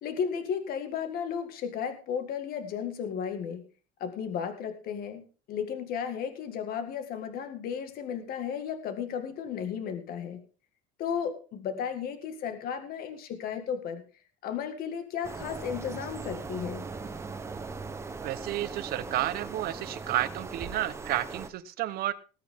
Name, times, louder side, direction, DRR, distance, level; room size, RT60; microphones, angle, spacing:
voice 1, 0.0-3.6 4.0-10.4 11.0-14.0 14.4-16.9, left 7 dB, 45° left, 8 dB, 1.9 m, -34 dB
sound 1, 15.2-21.5, right 4 dB, 15° right, 1.0 m, -39 dB
voice 2, 18.2-22.1, right 14 dB, 45° right, 12 dB, 1.0 m, -31 dB
19.5 x 8.7 x 3.7 m, 0.36 s
cardioid pair, 165°, 21 cm